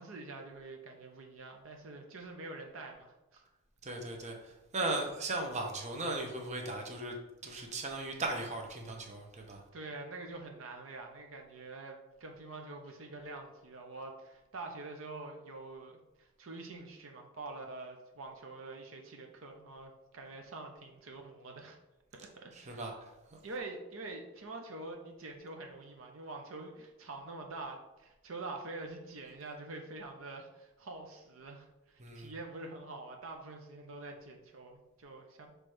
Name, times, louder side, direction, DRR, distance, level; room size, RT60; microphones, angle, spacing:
voice 1, 0.0-3.4 9.7-21.8 22.2-22.8 23.4-35.5, right 2 dB, 70° right, 2 dB, 0.8 m, -46 dB
voice 2, 3.8-7.2 7.4-9.6 22.5-23.1 32.0-32.3, right 2 dB, 35° right, 2 dB, 0.9 m, -37 dB
6.0 x 3.3 x 4.9 m, 0.99 s
head